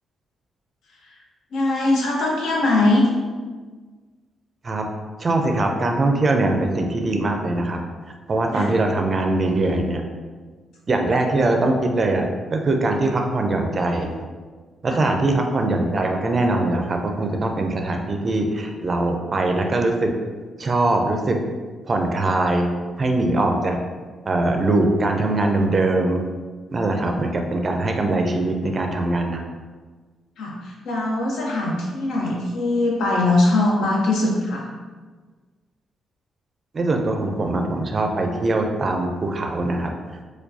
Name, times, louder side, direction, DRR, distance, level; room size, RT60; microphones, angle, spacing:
voice 1, 1.5-3.1 8.5-8.7 14.9-15.0 30.4-34.7, left 2 dB, 85° left, -3 dB, 0.8 m, -21 dB
voice 2, 5.2-7.8 8.3-10.0 10.9-12.3 12.5-14.2 14.8-20.1 20.6-21.4 21.9-22.7 23.0-23.8 24.3-26.3 26.7-29.4 36.7-39.9, right 2 dB, 30° right, 3 dB, 0.4 m, -22 dB
4.5 x 2.2 x 2.6 m, 1.4 s
cardioid pair, 130°, 0 cm